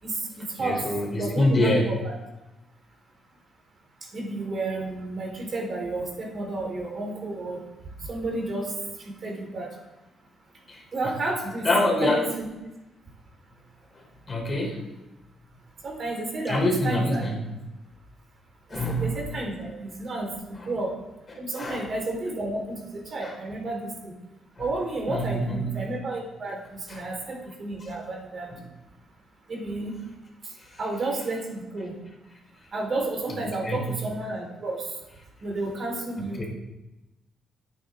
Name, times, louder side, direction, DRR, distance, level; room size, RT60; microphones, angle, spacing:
voice 1, 0.0-2.1 4.0-7.6 8.0-9.8 10.9-12.5 15.8-17.3 18.7-20.9 21.4-24.2 24.6-28.5 29.5-29.9 30.4-30.5 30.8-31.9 32.7-34.9 35.4-36.5, right 2 dB, 45° right, 0 dB, 4.5 m, -31 dB
voice 2, 0.6-1.9 10.7-10.8 11.6-12.2 14.3-14.8 16.5-17.3 18.7-19.1 21.6-21.9 23.2-23.3 25.1-25.7 26.9-27.0 33.3-33.9 36.4-36.5, left 1 dB, 35° left, 1 dB, 3.9 m, -25 dB
24.5 x 9.3 x 3.9 m, 1.0 s
cardioid pair, 110°, 0 cm